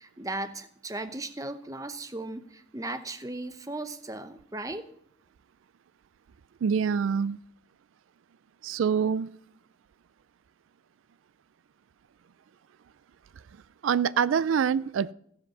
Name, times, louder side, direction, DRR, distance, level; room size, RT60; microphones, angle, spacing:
voice 1, 0.0-4.9, right 2 dB, 15° right, 10 dB, 0.8 m, -37 dB
voice 2, 6.6-7.4 8.6-9.3 13.8-15.1, right 7 dB, 85° right, 19 dB, 0.4 m, -25 dB
15.0 x 7.8 x 5.5 m, 0.73 s
head